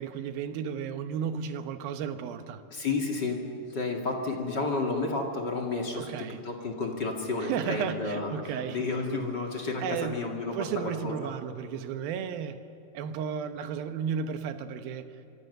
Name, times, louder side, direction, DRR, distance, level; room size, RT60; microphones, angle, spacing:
voice 1, 0.0-2.6 5.9-6.4 7.4-8.9 9.8-10.2 10.5-12.6 12.9-15.1, right 7 dB, 90° right, 9 dB, 2.9 m, -33 dB
voice 2, 2.7-3.4 3.7-6.1 6.4-8.3 8.7-11.3, left 3 dB, 35° left, 1 dB, 2.4 m, -31 dB
25.0 x 25.0 x 6.8 m, 2.7 s
omnidirectional pair, 4.1 m